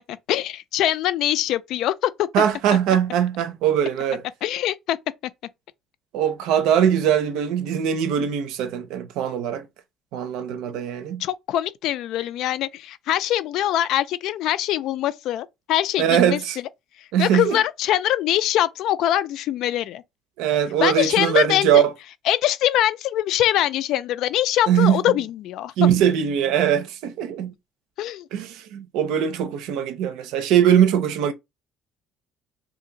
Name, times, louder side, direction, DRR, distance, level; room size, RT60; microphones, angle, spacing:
voice 1, 0.0-2.3 4.4-5.0 10.7-10.8 11.2-16.4 17.2-20.0 20.8-21.8 22.3-25.7 28.0-28.2, left 12 dB, 65° left, 0.4 m, -23 dB
voice 2, 2.3-4.2 6.1-9.7 10.1-11.2 16.0-16.6 17.1-17.6 20.4-21.9 24.7-25.1 25.8-27.5 28.3-31.3, right 9 dB, 80° right, 0.6 m, -21 dB
2.8 x 2.6 x 3.8 m
cardioid pair, 140°, 0 cm